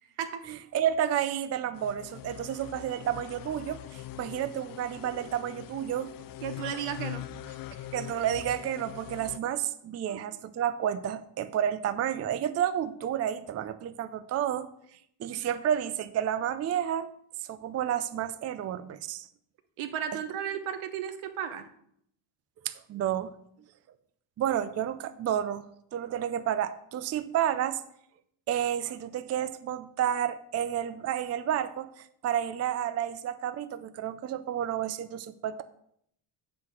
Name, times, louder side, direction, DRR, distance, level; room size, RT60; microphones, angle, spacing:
voice 1, 0.5-6.1 7.9-14.7 15.2-17.1 17.5-19.3 22.6-23.3 24.4-25.7 25.9-27.8 28.5-35.6, right 10 dB, 35° right, 12 dB, 0.5 m, -30 dB
sound 1, 1.7-9.4, left 13 dB, 45° left, 0.5 m, -43 dB
voice 2, 6.4-7.9 10.1-10.2 19.8-21.7, right 8 dB, 85° right, 8 dB, 1.2 m, -35 dB
7.7 x 5.8 x 6.1 m, 0.70 s
cardioid pair, 130°, 48 cm